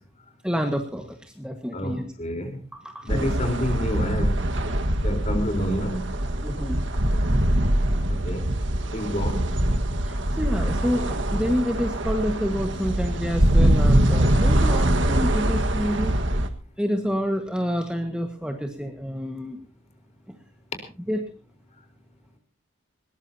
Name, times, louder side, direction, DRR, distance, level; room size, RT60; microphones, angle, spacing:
voice 1, 0.4-2.0 2.7-3.3 6.4-6.8 10.0-16.1 16.8-19.6 21.1-21.2, equal, 5° right, 4 dB, 1.6 m, -28 dB
voice 2, 1.7-2.6 3.0-4.4 5.0-6.0 8.1-8.5 8.9-9.5, equal, 35° left, 6 dB, 4.0 m, -28 dB
sound 1, 3.1-16.5, right 1 dB, 65° right, 1.6 m, -23 dB
20.5 x 20.0 x 2.8 m, 0.34 s
head